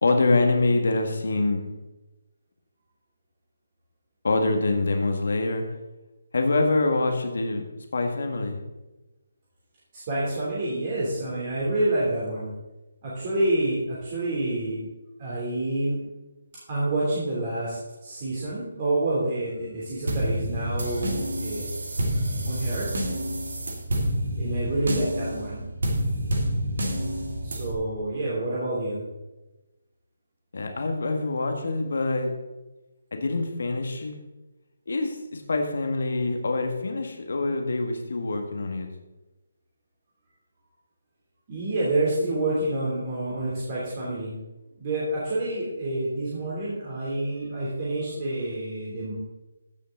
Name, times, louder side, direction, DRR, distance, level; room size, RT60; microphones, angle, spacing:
voice 1, 0.0-1.6 4.2-5.6 6.3-7.7 7.9-8.6 30.5-32.3 33.1-34.2 34.9-38.9, left 2 dB, 60° left, 4 dB, 1.7 m, -25 dB
voice 2, 9.9-12.5 13.0-14.8 15.2-16.0 16.7-21.7 22.4-22.9 24.4-25.7 27.4-29.0 41.5-44.3 44.8-49.1, right 1 dB, 35° right, -7 dB, 3.3 m, -28 dB
sound 1, 20.1-27.8, equal, 65° right, 2.0 m, -28 dB
15.5 x 6.5 x 3.9 m, 1.1 s
figure-of-eight pair, 145°, 0 cm